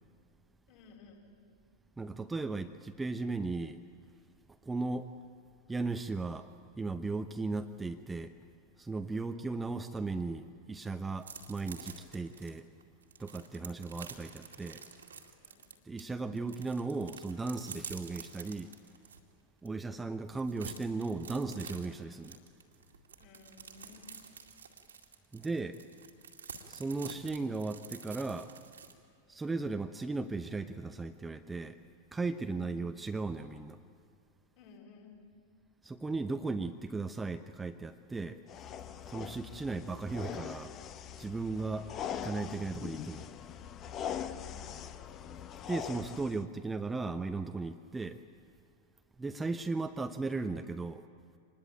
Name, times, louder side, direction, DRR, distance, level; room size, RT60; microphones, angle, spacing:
voice 1, 0.7-1.2 9.1-9.4 13.5-13.8 15.4-15.6 23.2-24.1 32.4-32.7 34.6-35.1 44.1-44.7 49.2-49.5, left 5 dB, 45° left, 0 dB, 7.4 m, -57 dB
voice 2, 2.0-3.8 4.6-5.1 5.7-8.4 8.8-12.7 13.2-14.8 15.8-18.7 19.6-22.4 25.3-25.8 26.7-28.5 29.3-31.8 32.1-33.8 35.8-38.4 39.1-40.7 41.2-41.9 42.2-43.3 45.7-48.2 49.2-51.0, right 3 dB, 10° right, 8 dB, 0.8 m, -36 dB
sound 1, 11.2-16.0 16.4-19.2 19.7-19.8 20.1-28.9, right 6 dB, 70° right, 2.3 m, -48 dB
sound 2, 38.5-46.4, left 9 dB, 30° left, 1.0 m, -42 dB
26.0 x 21.0 x 9.0 m, 2.4 s
figure-of-eight pair, 90°, 0 cm